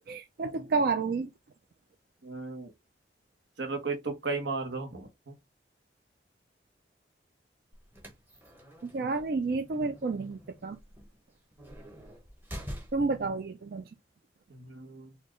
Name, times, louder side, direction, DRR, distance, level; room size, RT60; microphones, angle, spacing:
voice 1, 0.1-1.3 8.9-10.8 12.9-13.8, right 4 dB, 55° right, 0.4 m, -30 dB
voice 2, 2.2-2.7 3.6-5.3 14.5-15.1, right 3 dB, 75° right, 1.1 m, -35 dB
sound 1, 7.7-13.3, equal, 10° right, 0.9 m, -46 dB
4.4 x 2.3 x 3.1 m
head